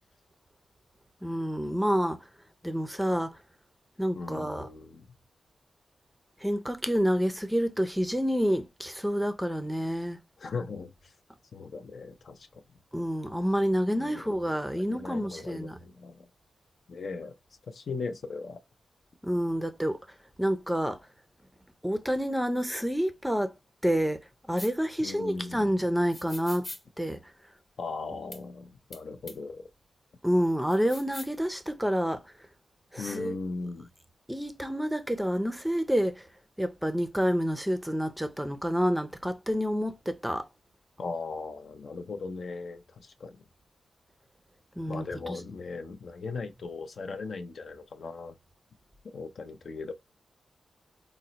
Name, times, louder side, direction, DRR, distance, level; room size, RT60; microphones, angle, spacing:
voice 1, 1.2-2.3 2.6-3.4 4.0-4.7 6.4-10.2 12.9-15.8 19.2-20.0 20.4-21.0 21.8-23.5 23.8-26.7 27.0-27.2 30.2-32.2 32.9-33.4 34.3-36.3 36.6-40.5 44.8-45.4, equal, 5° right, 0.5 m, -28 dB
voice 2, 4.2-5.1 10.4-11.1 11.5-12.6 14.0-14.4 14.7-16.3 16.9-17.3 17.7-18.6 25.0-25.6 27.8-29.6 33.0-33.9 41.0-43.4 44.9-48.4 49.0-49.9, left 4 dB, 65° left, 0.5 m, -38 dB
sound 1, 24.6-24.7 26.1-26.8 28.3-28.4 28.9-29.0 29.3-29.4 30.7-31.4, left 2 dB, 35° left, 0.9 m, -42 dB
3.8 x 2.0 x 2.8 m
cardioid pair, 65°, 0 cm